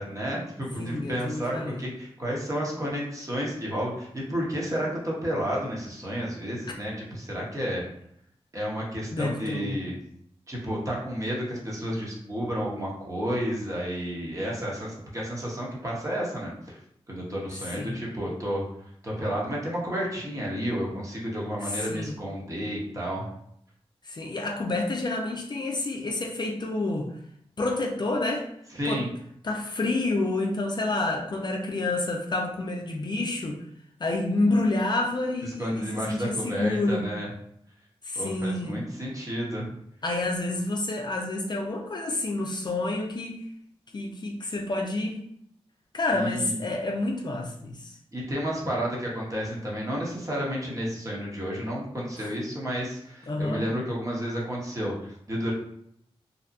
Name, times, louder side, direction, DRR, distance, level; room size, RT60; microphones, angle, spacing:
voice 1, 0.0-7.8 8.5-9.9 10.5-16.8 17.1-18.6 19.0-23.3 28.7-29.1 35.6-37.3 38.2-39.7 46.1-46.6 48.1-55.5, equal, 30° right, -4 dB, 1.0 m, -31 dB
voice 2, 0.8-1.8 9.1-9.8 17.7-18.0 21.6-22.1 24.0-27.1 27.6-28.5 28.8-29.0 29.4-33.6 34.0-37.1 38.0-38.8 40.0-43.5 43.9-45.2 45.9-48.0 52.2-52.3 53.3-53.6, left 2 dB, 45° left, 1 dB, 0.4 m, -29 dB
2.7 x 2.2 x 2.5 m, 0.70 s
cardioid pair, 60°, 10 cm